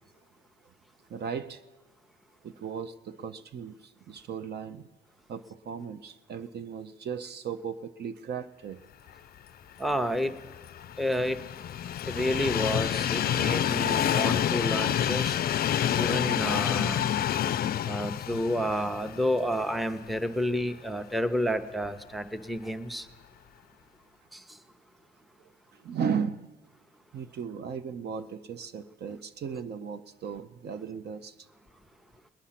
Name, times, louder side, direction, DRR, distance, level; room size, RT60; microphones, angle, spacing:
voice 1, 1.1-1.6 2.4-4.9 5.3-8.8 17.7-18.0 25.8-26.5 27.1-31.3, right 7 dB, 55° right, 10 dB, 0.6 m, -36 dB
voice 2, 9.8-10.3 11.0-11.4 12.1-15.4 16.0-17.1 17.9-23.1 24.3-24.4, equal, ahead, 9 dB, 0.7 m, -30 dB
Train, 10.1-20.2 20.7-20.8 21.9-22.0, left 10 dB, 50° left, 0.4 m, -28 dB
20.0 x 9.8 x 5.8 m, 1.5 s
cardioid pair, 90°, 20 cm